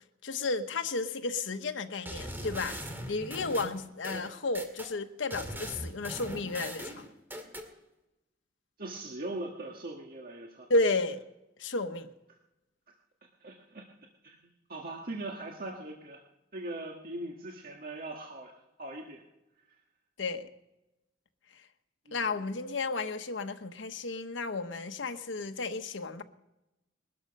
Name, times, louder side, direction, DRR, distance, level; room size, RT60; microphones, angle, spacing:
voice 1, 0.2-2.8 3.1-7.1 10.7-11.2 11.6-12.1 20.2-20.5 22.1-26.2, left 3 dB, 85° left, 1.0 m, -32 dB
sound 1, 2.1-4.9 5.3-7.7, equal, 10° right, 2.1 m, -40 dB
voice 2, 8.8-10.7 13.4-13.8 14.2-14.4 14.7-16.2 16.5-19.2 22.1-22.4, right 2 dB, 50° right, 1.7 m, -40 dB
21.0 x 13.0 x 5.3 m
head